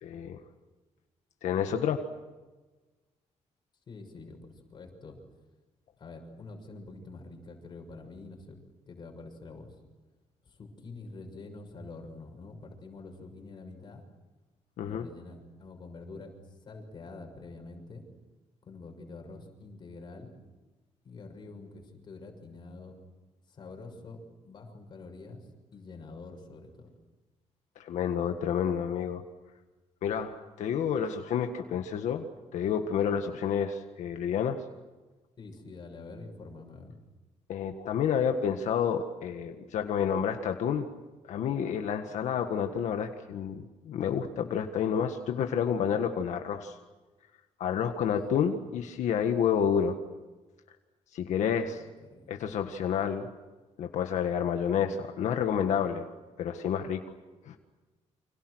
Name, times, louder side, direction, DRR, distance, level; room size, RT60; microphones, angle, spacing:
voice 1, 0.0-0.4 1.4-2.0 14.8-15.1 27.8-29.2 30.0-34.6 37.5-40.9 41.3-46.8 47.6-49.9 51.1-51.8 52.3-53.3 53.8-56.0 56.4-57.0 57.5-57.6, left 8 dB, 85° left, 5 dB, 1.7 m, -29 dB
voice 2, 3.9-5.2 6.0-8.6 8.9-9.8 10.4-14.0 14.8-16.3 16.6-18.0 18.6-20.3 21.0-22.9 23.5-24.2 24.4-26.9 35.4-36.9 48.1-48.6 51.5-52.3, left 3 dB, 40° left, 3 dB, 6.5 m, -46 dB
30.0 x 26.5 x 6.4 m, 1.2 s
cardioid pair, 155°, 12 cm